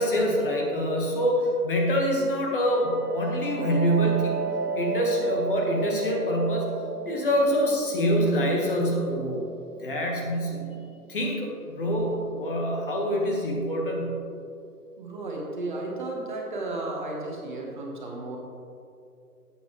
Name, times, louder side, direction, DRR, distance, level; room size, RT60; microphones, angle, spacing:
voice 1, 0.0-4.4 4.7-6.7 7.0-9.4 9.8-10.8 11.1-14.2, equal, 35° left, -1 dB, 1.6 m, -25 dB
sound 1, 2.4-11.9, right 4 dB, 75° right, 0.7 m, -35 dB
voice 2, 15.0-18.4, right 2 dB, 30° right, -1 dB, 1.3 m, -33 dB
13.0 x 8.8 x 3.2 m, 2.6 s
figure-of-eight pair, 150°, 47 cm